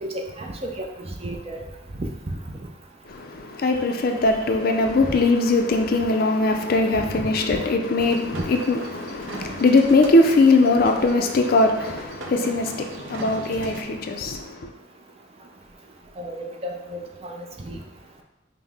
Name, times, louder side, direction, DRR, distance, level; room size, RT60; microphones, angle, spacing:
voice 1, 0.0-0.9 1.2-1.6 2.0-2.1 7.0-7.1 8.3-8.5 16.2-17.3 17.6-17.8, right 1 dB, 30° right, 0.5 m, -32 dB
voice 2, 3.1-14.7, left 2 dB, 50° left, 0.4 m, -21 dB
sound 1, 8.0-13.8, right 2 dB, 85° right, 0.5 m, -39 dB
5.5 x 2.0 x 3.3 m
head